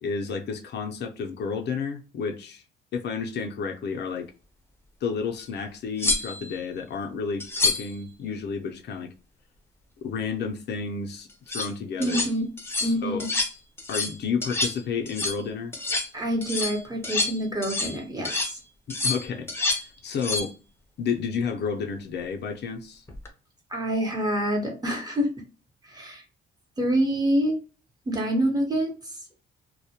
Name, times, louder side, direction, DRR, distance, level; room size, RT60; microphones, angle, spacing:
voice 1, 0.0-2.6 2.9-4.3 5.0-9.1 10.0-12.2 12.8-13.2 13.9-15.7 18.9-19.5 19.8-20.5 21.0-23.0, left 5 dB, 60° left, 0.5 m, -31 dB
sound 1, 5.4-5.5 6.0-6.6 7.4-7.9 11.3-11.7 12.0-12.3 12.6-12.9 13.2-13.5 13.8-14.2 14.4-14.8 15.1-15.4 15.7-16.1 16.4-18.0 18.2-18.5 18.9-19.8 20.1-20.5 23.1-23.3, left 3 dB, 10° left, 0.6 m, -28 dB
voice 2, 12.0-12.5 12.8-13.3 16.1-18.6 23.7-25.3 25.8-26.2 26.8-27.6 28.1-29.4, right 1 dB, 20° right, 0.9 m, -26 dB
2.1 x 2.1 x 2.8 m
cardioid pair, 90°, 20 cm